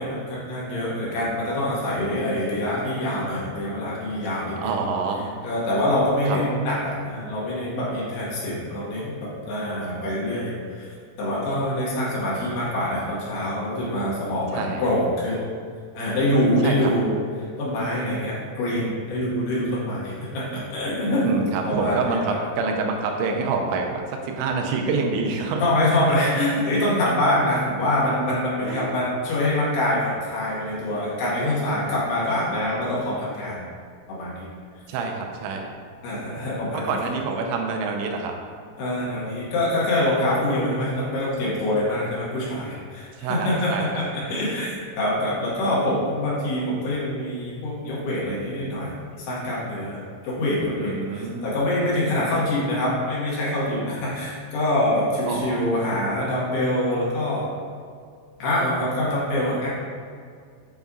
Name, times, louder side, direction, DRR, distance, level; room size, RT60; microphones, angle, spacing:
voice 1, 0.0-4.7 5.4-10.9 11.2-15.4 15.9-21.3 21.6-22.4 25.6-33.6 34.1-34.5 36.0-37.0 38.8-48.9 49.3-50.0 50.2-57.5 58.4-59.7, left 1 dB, 70° left, -6 dB, 3.3 m, -25 dB
voice 2, 4.3-5.3 6.3-6.4 14.5-14.8 16.6-16.7 21.2-24.0 24.4-25.6 28.7-28.9 34.9-35.6 36.7-38.3 43.2-43.9 50.8-51.5 52.2-52.3 55.3-56.0, right 4 dB, 90° right, 2 dB, 3.0 m, -27 dB
8.1 x 5.2 x 2.4 m, 2.1 s
omnidirectional pair, 5.1 m